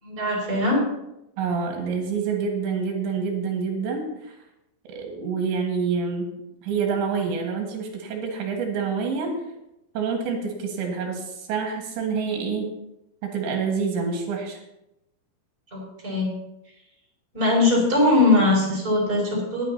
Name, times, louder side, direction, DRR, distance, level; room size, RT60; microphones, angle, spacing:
voice 1, 0.0-0.8 15.7-16.3 17.3-19.6, left 2 dB, 15° right, -3 dB, 5.2 m, -21 dB
voice 2, 1.4-4.4 4.9-6.3 6.6-9.4 10.0-12.7 13.2-14.6, right 5 dB, 70° right, 1 dB, 3.6 m, -27 dB
20.5 x 9.5 x 2.9 m, 0.88 s
omnidirectional pair, 5.8 m